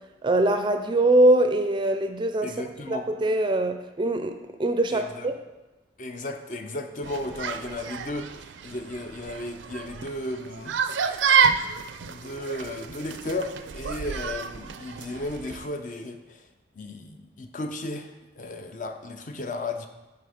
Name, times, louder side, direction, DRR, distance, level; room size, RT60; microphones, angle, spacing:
voice 1, 0.2-5.3, right 1 dB, 25° right, 7 dB, 0.4 m, -23 dB
voice 2, 2.4-3.1 4.9-5.3 6.0-10.7 11.1-11.3 12.1-16.5 16.7-19.9, left 2 dB, 45° left, 6 dB, 0.6 m, -35 dB
sound 1, 7.0-15.7, right 6 dB, 85° right, 0.4 m, -29 dB
9.3 x 3.5 x 5.0 m, 1.1 s
head